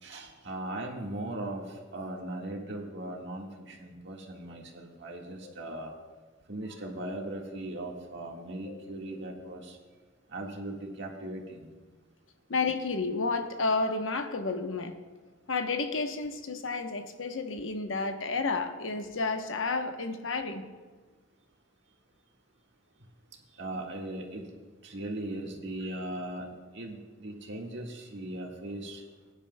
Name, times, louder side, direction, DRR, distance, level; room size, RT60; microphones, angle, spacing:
voice 1, 0.0-5.9 6.5-9.8 10.3-11.6 23.6-24.5 24.8-26.5 26.7-29.0, right 1 dB, 65° right, 1 dB, 1.7 m, -38 dB
voice 2, 5.4-5.7 8.7-9.1 12.5-14.9 15.5-20.6, left 3 dB, 90° left, 6 dB, 0.9 m, -31 dB
21.5 x 10.0 x 2.2 m, 1.4 s
head